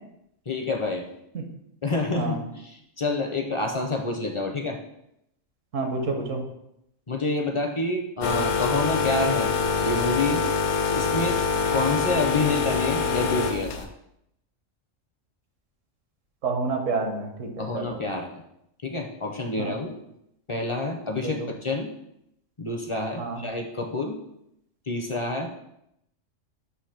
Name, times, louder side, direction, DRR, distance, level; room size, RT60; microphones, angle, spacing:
voice 1, 0.5-1.1 1.8-4.8 7.1-9.5 9.8-10.4 10.9-11.4 11.7-13.9 17.6-18.4 18.8-19.9 20.5-21.9 22.6-24.2 24.9-25.5, left 2 dB, 40° left, 3 dB, 0.5 m, -28 dB
voice 2, 5.7-6.4 16.4-18.0 19.6-19.8 21.2-21.3 23.2-23.4, right 3 dB, 80° right, 4 dB, 1.4 m, -29 dB
sound 1, 8.2-13.9, left 5 dB, 70° left, 0.9 m, -25 dB
6.4 x 2.9 x 5.8 m, 0.80 s
omnidirectional pair, 1.3 m